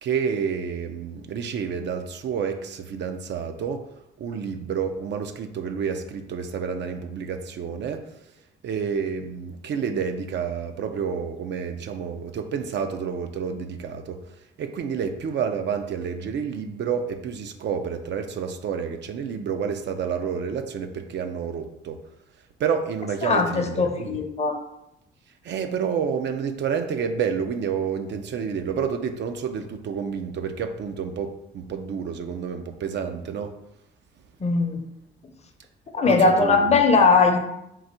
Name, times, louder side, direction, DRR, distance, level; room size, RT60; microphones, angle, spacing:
voice 1, 0.0-3.8 4.2-8.0 8.6-14.2 14.6-22.0 22.6-24.2 25.4-33.5 36.1-36.7, right 6 dB, 65° right, 6 dB, 0.5 m, -29 dB
voice 2, 23.2-24.6 34.4-34.8 35.9-37.4, left 4 dB, 35° left, 5 dB, 0.7 m, -19 dB
3.8 x 2.6 x 4.3 m, 0.83 s
cardioid pair, 90°, 20 cm